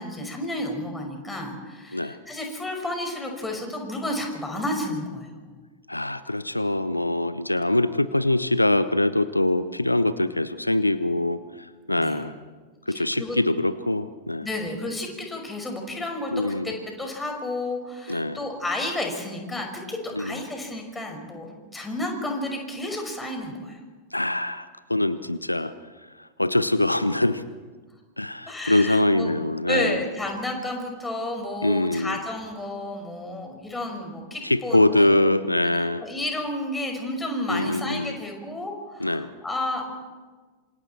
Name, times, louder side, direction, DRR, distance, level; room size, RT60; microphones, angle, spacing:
voice 1, 0.0-5.4 11.9-12.2 12.9-13.4 14.4-23.8 28.5-29.3 29.7-35.3 35.6-39.9, left 1 dB, 10° left, 2 dB, 5.8 m, -31 dB
voice 2, 5.9-12.3 12.9-14.5 16.3-16.7 18.1-18.4 20.1-20.4 24.1-25.7 26.2-27.4 28.2-30.0 31.6-32.2 34.4-36.1 37.5-38.2 39.0-39.3, left 1 dB, 85° left, 15 dB, 0.7 m, -23 dB
27.0 x 27.0 x 4.5 m, 1.4 s
figure-of-eight pair, 90°, 0 cm